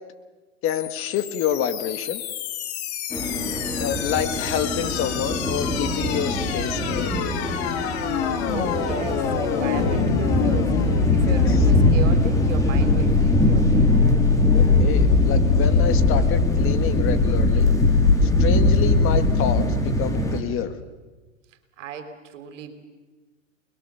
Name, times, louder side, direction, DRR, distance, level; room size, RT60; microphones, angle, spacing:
voice 1, 0.6-2.2 3.7-7.2 11.4-11.6 14.5-17.7 18.2-20.7, left 9 dB, 30° left, 10 dB, 1.7 m, -28 dB
sound 1, 0.7-19.6, left 5 dB, 50° left, 2.8 m, -23 dB
sound 2, 3.1-20.4, equal, 10° left, 3.4 m, -24 dB
voice 2, 8.5-10.8 11.1-13.9 21.8-22.7, right 7 dB, 60° right, 8 dB, 3.7 m, -36 dB
28.5 x 21.0 x 7.0 m, 1.2 s
hypercardioid pair, 115°, 40 cm